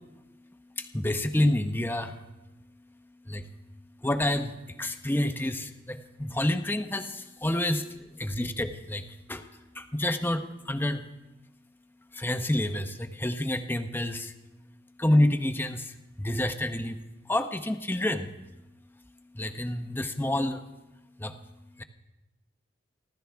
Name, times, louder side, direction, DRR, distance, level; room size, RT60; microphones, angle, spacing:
voice 1, 0.8-2.2 3.3-3.5 4.0-7.8 8.2-9.4 9.7-11.0 12.1-14.3 15.0-17.0 17.3-18.3 19.3-20.6 21.2-21.3 21.8-21.9, left 1 dB, 10° left, 7 dB, 0.8 m, -28 dB
29.5 x 12.5 x 3.5 m, 1.0 s
head